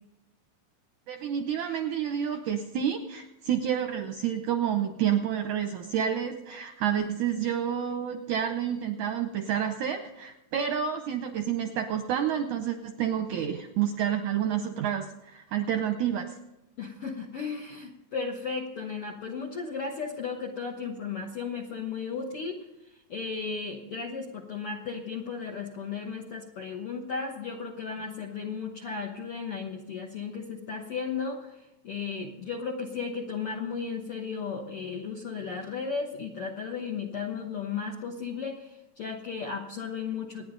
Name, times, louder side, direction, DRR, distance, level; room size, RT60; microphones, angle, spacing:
voice 1, 1.1-16.3, right 9 dB, 75° right, 6 dB, 1.8 m, -29 dB
voice 2, 16.8-22.6 23.1-31.5 31.8-40.5, left 5 dB, 65° left, 1 dB, 1.4 m, -35 dB
26.5 x 10.0 x 3.9 m, 0.95 s
omnidirectional pair, 4.3 m